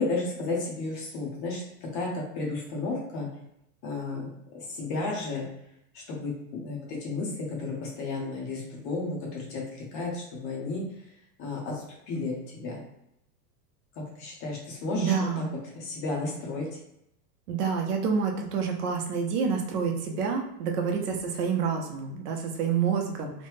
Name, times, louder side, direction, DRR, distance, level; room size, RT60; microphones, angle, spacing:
voice 1, 0.0-3.3 3.8-4.3 4.5-5.5 5.9-10.8 11.4-12.8 13.9-15.4 15.8-16.8, left 3 dB, 30° left, -1 dB, 0.6 m, -33 dB
voice 2, 14.9-15.5 17.5-23.5, right 6 dB, 70° right, 2 dB, 0.9 m, -28 dB
3.1 x 2.2 x 3.2 m, 0.80 s
supercardioid pair, 150°, 49 cm